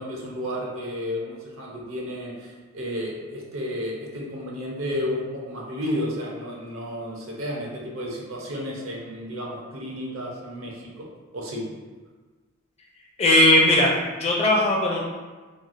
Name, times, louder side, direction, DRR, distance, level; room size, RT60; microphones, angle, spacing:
voice 1, 0.0-11.6, left 1 dB, 70° right, -2 dB, 0.6 m, -32 dB
voice 2, 13.2-13.9 14.2-15.0, left 1 dB, 30° left, -2 dB, 0.4 m, -18 dB
3.0 x 2.4 x 2.5 m, 1.3 s
head